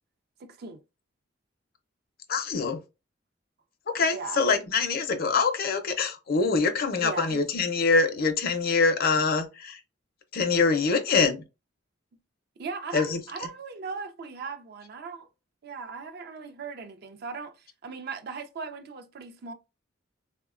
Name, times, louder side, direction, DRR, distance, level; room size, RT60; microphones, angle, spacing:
voice 1, 0.4-0.8 4.1-4.4 7.0-7.4 12.6-15.3 15.6-19.5, right 5 dB, 55° right, 0.4 m, -38 dB
voice 2, 2.3-2.8 3.9-9.8 10.3-11.4 12.9-13.2, left 4 dB, 50° left, 0.5 m, -24 dB
3.4 x 2.1 x 2.4 m
head